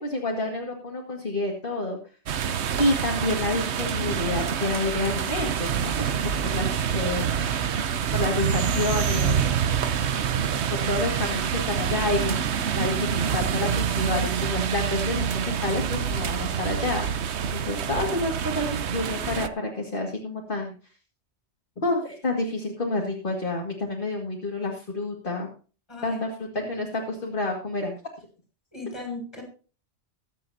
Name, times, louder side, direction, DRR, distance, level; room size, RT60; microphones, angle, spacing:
voice 1, 0.0-2.0 2.8-5.9 6.2-7.4 8.1-9.5 10.7-12.4 12.7-17.0 17.5-20.7 21.8-25.5 26.0-26.3 26.7-27.9, left 2 dB, 50° left, -1 dB, 2.3 m, -29 dB
sound 1, 2.3-19.5, right 7 dB, 80° right, 1.1 m, -26 dB
voice 2, 25.9-26.2 26.5-26.6 28.7-29.4, left 3 dB, 25° left, 2 dB, 6.4 m, -36 dB
22.5 x 8.5 x 2.8 m, 0.36 s
omnidirectional pair, 1.1 m